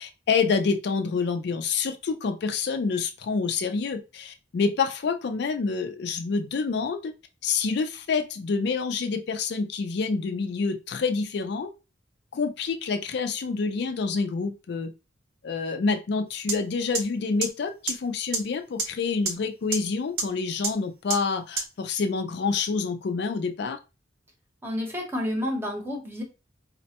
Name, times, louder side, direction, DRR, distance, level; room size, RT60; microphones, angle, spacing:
voice 1, 0.0-7.1 7.4-11.7 12.3-14.9 15.4-23.8, left 4 dB, 65° left, 7 dB, 0.4 m, -27 dB
sound 1, 16.5-16.6 16.9-17.0 17.4-17.5 17.9-18.0 18.3-18.4 18.8-18.9 19.3-19.4 19.7-19.8 20.2-20.3 20.6-20.7 21.1-21.2 21.6-21.7, right 3 dB, 60° right, 0.8 m, -25 dB
voice 2, 24.6-26.2, left 1 dB, 10° right, 1 dB, 0.9 m, -30 dB
4.1 x 2.1 x 2.8 m, 0.29 s
head